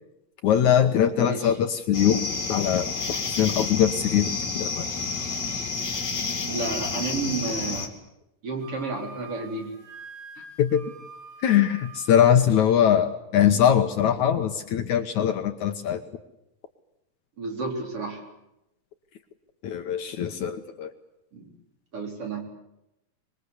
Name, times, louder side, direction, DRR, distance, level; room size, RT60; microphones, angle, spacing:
voice 1, 0.4-4.9 10.6-10.9 11.4-16.0 19.6-20.9, left 9 dB, 65° left, 6 dB, 2.3 m, -22 dB
voice 2, 1.2-1.5 6.4-7.9 8.4-9.7 10.4-10.5 17.4-18.2 21.3-21.5 21.9-22.4, right 3 dB, 40° right, 2 dB, 4.9 m, -31 dB
sound 1, 1.9-7.9, left 4 dB, 30° left, 2.8 m, -30 dB
Wind instrument woodwind instrument, 8.6-12.3, right 4 dB, 85° right, 5.1 m, -45 dB
25.5 x 22.5 x 8.2 m, 0.87 s
omnidirectional pair, 4.0 m